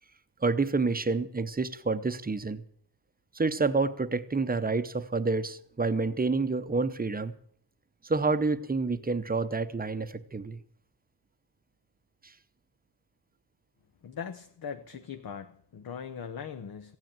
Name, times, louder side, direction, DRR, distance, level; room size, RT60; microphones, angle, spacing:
voice 1, 0.4-2.6 3.3-7.3 8.0-10.6, right 3 dB, 20° right, 12 dB, 0.7 m, -28 dB
voice 2, 14.0-17.0, left 7 dB, 55° left, 8 dB, 0.8 m, -40 dB
15.0 x 9.3 x 8.8 m, 0.64 s
wide cardioid pair, 150°, 42 cm